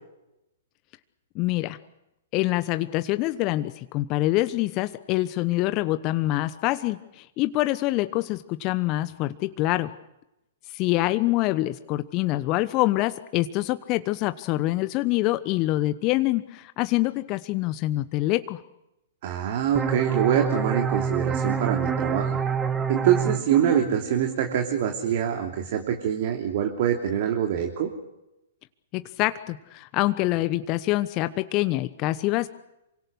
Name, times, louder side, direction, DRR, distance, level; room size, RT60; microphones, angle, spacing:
voice 1, 1.3-1.8 2.3-9.9 10.7-18.6 28.9-32.5, left 17 dB, 35° left, 12 dB, 1.1 m, -25 dB
voice 2, 19.2-22.4 22.9-27.9, right 9 dB, 50° right, 3 dB, 3.1 m, -25 dB
sound 1, 19.7-25.1, right 6 dB, 15° right, 1.9 m, -28 dB
28.0 x 25.0 x 6.4 m, 0.89 s
figure-of-eight pair, 110°, 0 cm